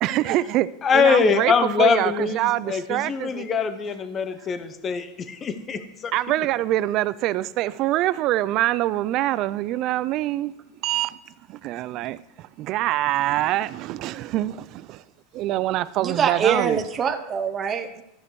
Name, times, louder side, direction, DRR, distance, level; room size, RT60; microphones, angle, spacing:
voice 1, 0.0-0.7 0.9-1.5 1.8-3.4 6.1-10.5 10.8-11.2 11.5-15.0 15.3-16.8, right 15 dB, 40° right, 0.3 m, -25 dB
voice 2, 0.8-6.1, left 6 dB, 20° left, 0.7 m, -23 dB
voice 3, 16.0-18.0, right 7 dB, 20° right, 0.7 m, -24 dB
14.0 x 5.2 x 4.7 m
supercardioid pair, 155°, 0 cm